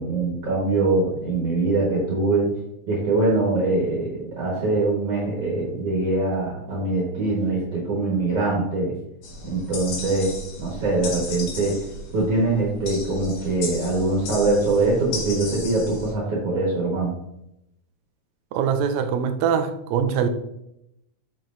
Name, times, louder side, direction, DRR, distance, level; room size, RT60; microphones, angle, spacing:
voice 1, 0.0-2.5 2.9-8.9 9.5-11.8 12.1-17.1, right 2 dB, 55° right, 2.2 m, -23 dB
sound 1, 9.2-16.1, left 2 dB, 85° left, 2.9 m, -35 dB
voice 2, 18.5-20.3, right 7 dB, 80° right, 1.7 m, -23 dB
7.7 x 5.6 x 2.5 m
omnidirectional pair, 3.5 m